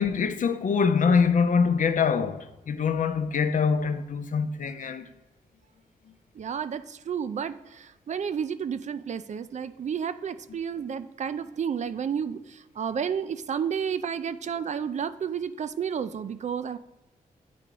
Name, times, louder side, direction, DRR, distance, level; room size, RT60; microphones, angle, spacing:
voice 1, 0.0-5.0, left 5 dB, 60° left, 0.6 m, -24 dB
voice 2, 6.4-16.8, right 7 dB, 55° right, 0.4 m, -31 dB
8.5 x 3.9 x 4.6 m
cardioid pair, 55°, 15 cm